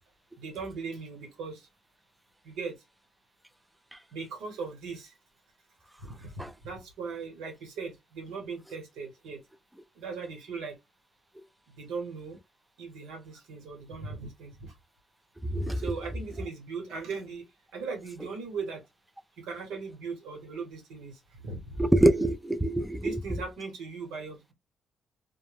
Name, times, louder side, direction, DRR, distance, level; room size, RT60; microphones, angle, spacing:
voice 1, 0.4-1.7 2.4-2.8 4.1-5.1 6.0-9.4 10.0-10.8 11.8-12.4 12.8-14.7 15.7-17.5 17.7-18.8 19.4-21.8 23.0-24.5, right 5 dB, 90° right, 1.1 m, -38 dB
voice 2, 15.5-15.9 21.8-23.2, right 1 dB, 5° right, 0.4 m, -25 dB
2.2 x 2.1 x 3.2 m
cardioid pair, 90°, 0 cm